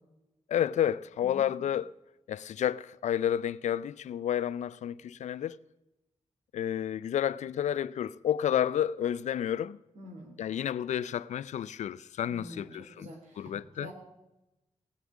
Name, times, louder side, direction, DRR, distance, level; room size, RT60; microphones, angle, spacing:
voice 1, 0.5-1.9 2.3-5.6 6.5-9.8 10.4-13.1 13.4-13.9, left 10 dB, 80° left, 0.4 m, -30 dB
voice 2, 9.9-10.3 12.2-13.9, equal, 90° right, 3.3 m, -47 dB
17.0 x 8.0 x 6.2 m
cardioid pair, 65°, 12 cm